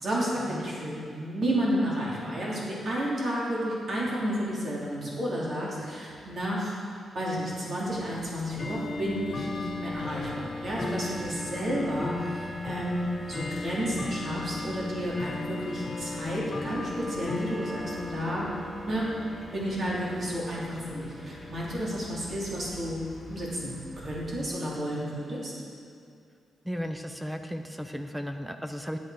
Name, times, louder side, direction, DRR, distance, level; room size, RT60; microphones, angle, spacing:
voice 1, 0.0-6.7 7.1-18.5 18.8-19.1 19.5-23.0 23.3-25.5, equal, 45° right, -5 dB, 2.9 m, -31 dB
Bell / Tick-tock, 7.9-24.2, left 2 dB, 25° left, 0.8 m, -37 dB
voice 2, 26.6-29.0, equal, 5° right, 6 dB, 0.5 m, -35 dB
9.2 x 9.0 x 4.8 m, 2.4 s
cardioid pair, 120°, 0 cm